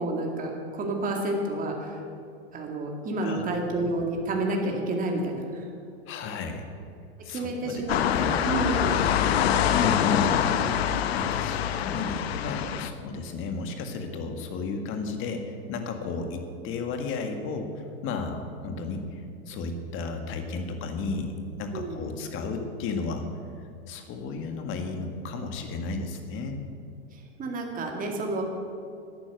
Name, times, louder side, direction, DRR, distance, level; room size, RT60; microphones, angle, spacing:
voice 1, 0.0-2.0 2.5-5.7 7.3-8.0 8.3-9.2 21.7-22.1 27.1-28.4, right 2 dB, 25° right, 1 dB, 2.2 m, -30 dB
voice 2, 3.2-3.6 6.1-6.7 7.2-7.9 8.1-8.4 9.7-10.4 11.1-21.3 21.6-23.3 23.9-26.6, left 4 dB, 40° left, 5 dB, 1.8 m, -33 dB
sound 1, 7.9-12.9, left 9 dB, 75° left, 0.9 m, -25 dB
10.5 x 9.6 x 8.0 m, 2.4 s
hypercardioid pair, 115°, 31 cm